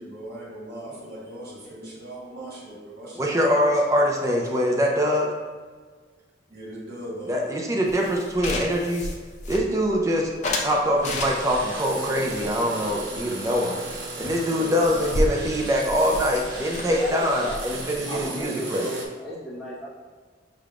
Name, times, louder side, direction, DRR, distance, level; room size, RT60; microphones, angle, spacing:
voice 1, 0.0-3.7 6.5-7.4 14.5-14.9, right 1 dB, 55° right, -7 dB, 1.5 m, -39 dB
voice 2, 3.2-5.3 7.3-9.1 9.5-10.3 10.6-13.8 14.2-18.9, equal, 15° right, -1 dB, 0.4 m, -23 dB
sound 1, 7.9-10.0 10.4-11.7 12.3-13.6 13.8-14.0 14.3-14.4 14.6-18.4, left 1 dB, 40° left, 0.5 m, -32 dB
sound 2, 11.0-19.1, right 2 dB, 80° right, 0.7 m, -36 dB
voice 3, 16.9-17.6 18.1-19.9, equal, ahead, -10 dB, 1.2 m, -35 dB
5.5 x 3.4 x 2.4 m, 1.5 s
head